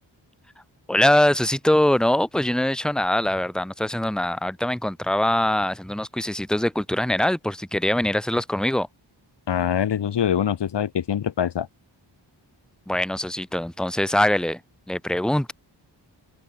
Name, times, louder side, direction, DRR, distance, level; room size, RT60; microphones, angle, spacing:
voice 1, 0.9-8.9 12.9-14.6 14.9-15.5, left 1 dB, ahead, 1.4 m, -23 dB
voice 2, 9.5-11.7, left 9 dB, 65° left, 1.2 m, -24 dB
open air
wide cardioid pair, 105°, 44 cm